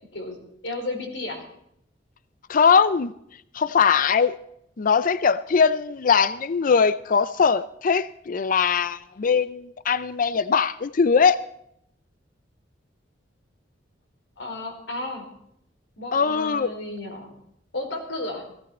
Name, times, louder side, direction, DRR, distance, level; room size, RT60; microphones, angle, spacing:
voice 1, 0.1-1.4 14.4-15.2 16.0-17.3 17.7-18.5, left 2 dB, 80° left, 4.7 m, -33 dB
voice 2, 2.5-3.1 3.5-4.3 4.8-11.4 16.1-16.7, left 6 dB, 45° left, 0.5 m, -21 dB
17.5 x 16.0 x 4.3 m
head